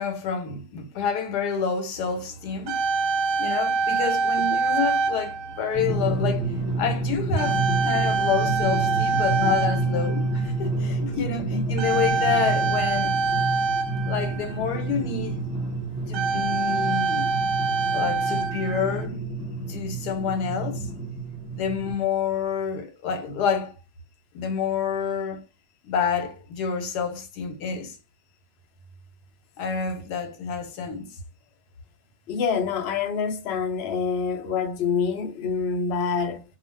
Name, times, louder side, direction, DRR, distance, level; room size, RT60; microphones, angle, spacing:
voice 1, 0.0-2.8 3.4-13.1 14.1-15.4 16.1-17.3 17.9-19.2 19.7-20.9 21.5-23.7 24.3-25.4 25.8-28.0 29.6-31.1, left 7 dB, 85° left, 1.3 m, -28 dB
sound 1, 2.2-2.3 2.4-6.0 6.7-6.9 7.4-10.7 11.8-14.8 15.5-15.6 16.0-19.0, right 4 dB, 70° right, 0.8 m, -25 dB
Drum, 5.7-21.9, right 3 dB, 10° right, 1.2 m, -29 dB
voice 2, 32.3-36.4, left 6 dB, 60° left, 0.7 m, -26 dB
2.4 x 2.3 x 3.2 m
omnidirectional pair, 1.7 m